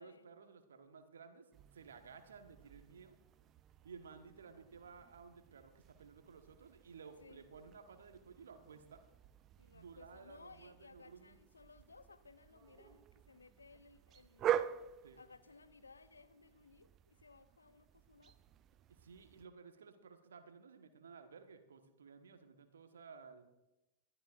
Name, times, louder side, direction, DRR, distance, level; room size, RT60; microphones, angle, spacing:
voice 1, 0.0-3.2 3.8-9.0 9.7-11.4 15.0-15.2 18.9-23.5, right 5 dB, 65° right, 8 dB, 1.4 m, -56 dB
sound 1, 1.5-19.5, right 10 dB, 30° right, 0.5 m, -46 dB
voice 2, 9.6-14.7 15.1-18.4, left 4 dB, 75° left, 12 dB, 0.7 m, -60 dB
22.0 x 13.5 x 2.5 m, 0.95 s
figure-of-eight pair, 90°, 0 cm